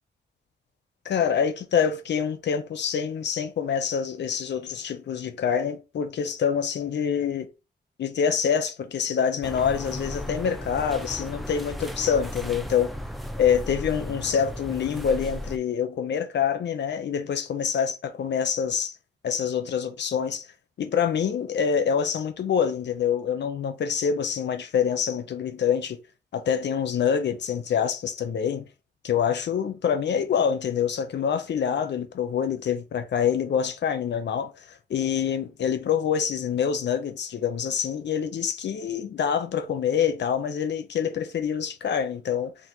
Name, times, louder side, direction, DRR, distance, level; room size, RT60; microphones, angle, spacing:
voice 1, 1.0-7.5 8.0-12.9 13.4-19.0 19.2-20.5 20.8-26.0 26.3-28.7 29.0-42.5, left 7 dB, 75° left, 0.6 m, -26 dB
sound 1, 9.4-15.6, equal, ahead, 0.4 m, -35 dB
4.4 x 2.5 x 3.8 m
wide cardioid pair, 135°, 18 cm